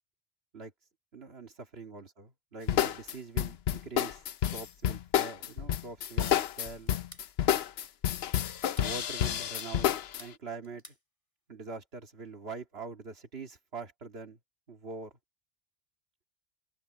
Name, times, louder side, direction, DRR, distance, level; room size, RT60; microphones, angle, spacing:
voice 1, 1.1-4.2 4.5-6.9 8.8-9.9 10.2-10.9 11.5-14.4 14.7-15.2, right 4 dB, 75° right, 2.4 m, -43 dB
sound 1, 2.7-10.2, left 10 dB, 80° left, 0.9 m, -29 dB
sound 2, 6.9-7.3 8.5-8.9 9.4-10.4 10.6-11.0, left 1 dB, 20° left, 3.9 m, -52 dB
omnidirectional pair, 1.0 m